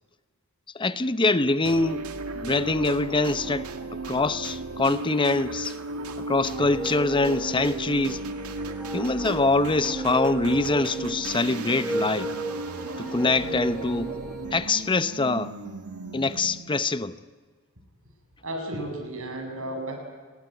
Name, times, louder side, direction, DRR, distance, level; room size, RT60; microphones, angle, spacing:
voice 1, 0.7-2.0 2.3-3.7 4.1-5.8 6.3-8.2 8.9-12.3 13.0-14.1 14.5-15.5 16.1-17.2, left 3 dB, 20° left, 0.9 m, -24 dB
sound 1, 1.6-16.8, right 3 dB, 85° right, 2.2 m, -35 dB
sound 2, 6.5-14.6, right 1 dB, ahead, 4.7 m, -35 dB
voice 2, 18.4-20.0, right 1 dB, 65° right, 7.7 m, -33 dB
29.5 x 20.0 x 9.3 m
head